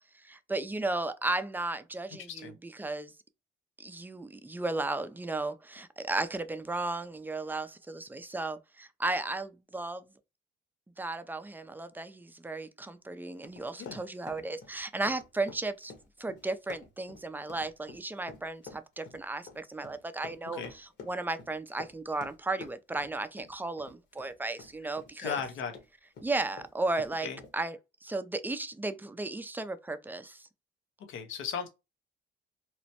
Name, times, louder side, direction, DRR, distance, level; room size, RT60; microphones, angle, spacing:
voice 1, 0.2-3.1 3.8-10.1 11.0-15.9 16.2-20.6 21.0-25.4 26.2-27.3 27.5-27.7 28.0-30.4, right 2 dB, 10° right, 0.3 m, -35 dB
voice 2, 2.1-2.6 13.8-14.0 20.5-20.7 24.8-25.8 27.2-27.4 31.1-31.7, left 7 dB, 80° left, 0.7 m, -37 dB
Run, 13.4-25.9 26.1-27.5, left 4 dB, 60° left, 1.1 m, -49 dB
2.9 x 2.1 x 2.8 m
cardioid pair, 90°, 20 cm